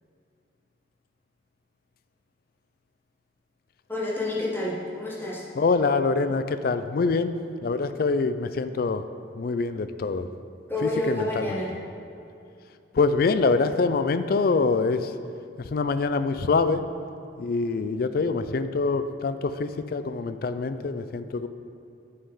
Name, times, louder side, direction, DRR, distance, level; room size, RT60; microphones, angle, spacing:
voice 1, 3.9-5.5 10.7-11.8, left 1 dB, 10° left, -6 dB, 1.6 m, -29 dB
voice 2, 5.6-7.3 7.6-9.0 9.4-10.3 11.1-11.2 12.9-15.1 15.6-16.8 17.4-21.5, left 4 dB, 50° left, 11 dB, 0.4 m, -25 dB
10.0 x 5.5 x 5.5 m, 2.6 s
head